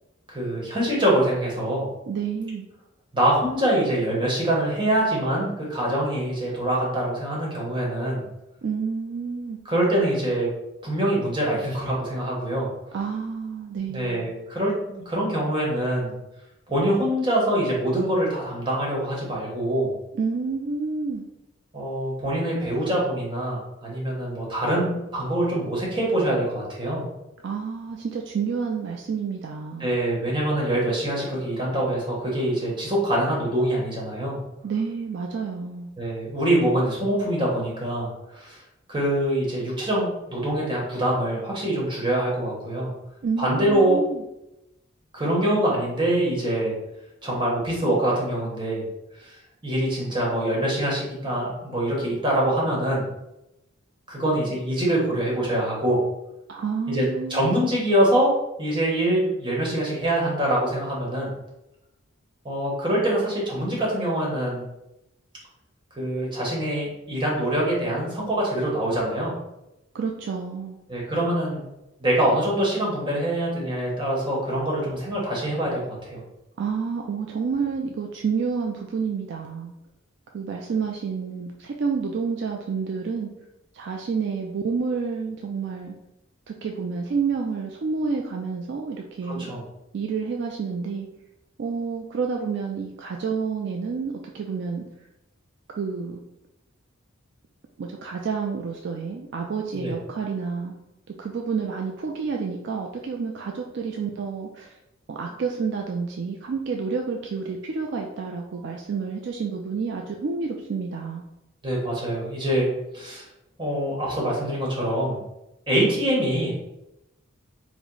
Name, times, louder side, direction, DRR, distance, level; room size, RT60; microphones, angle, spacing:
voice 1, 0.3-1.9 3.1-8.2 9.6-10.5 10.8-12.7 13.9-16.1 16.7-19.9 21.7-27.0 29.8-34.4 36.0-38.6 38.9-42.9 43.4-44.0 45.1-46.7 47.2-48.8 49.2-49.3 49.6-53.0 54.1-56.0 56.9-57.0 57.3-58.3 58.6-61.3 62.4-64.7 65.9-69.3 70.9-71.6 72.0-76.2 89.4-89.6 99.7-99.9 111.6-112.7 112.9-113.2 113.6-115.2 115.7-116.5, right 1 dB, 25° right, -4 dB, 1.1 m, -24 dB
voice 2, 2.1-2.7 8.6-9.6 12.9-14.3 20.1-21.3 27.4-29.9 34.6-35.9 43.2-44.2 56.5-57.5 69.9-70.8 76.6-79.7 80.3-83.3 83.7-85.9 86.5-89.6 89.9-91.1 91.6-94.8 95.7-96.2 97.8-100.7 101.2-104.7 105.1-111.2, right 5 dB, 55° right, 1 dB, 0.3 m, -29 dB
4.6 x 2.1 x 3.9 m, 0.90 s
head